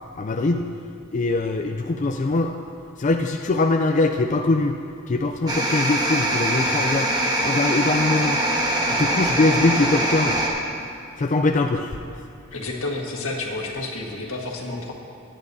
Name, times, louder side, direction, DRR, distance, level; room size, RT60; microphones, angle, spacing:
voice 1, 0.2-0.7 1.1-2.6 3.0-4.8 5.1-7.1 7.4-8.4 9.0-10.4 11.2-12.0, left 2 dB, 35° left, 4 dB, 0.4 m, -22 dB
sound 1, 5.5-10.5, right 1 dB, 20° right, 1.3 m, -23 dB
voice 2, 12.5-14.9, left 2 dB, 85° left, 0 dB, 1.6 m, -30 dB
17.0 x 10.5 x 2.7 m, 2.5 s
head